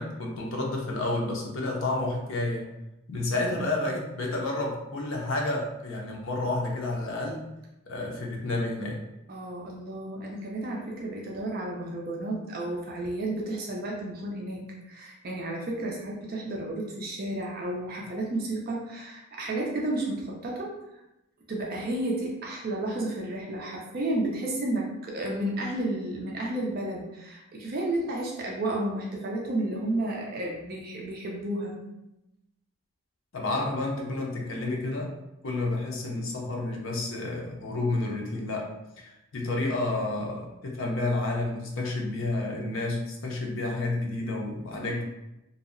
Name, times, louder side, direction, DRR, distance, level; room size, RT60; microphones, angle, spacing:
voice 1, 0.0-2.7 3.1-7.5 7.9-9.0 33.3-35.1 35.4-38.7 39.0-45.0, left 2 dB, 70° left, -1 dB, 0.6 m, -30 dB
voice 2, 9.3-20.8 21.5-31.8 44.8-44.9, right 1 dB, 45° right, -2 dB, 0.4 m, -32 dB
2.6 x 2.0 x 2.4 m, 0.90 s
head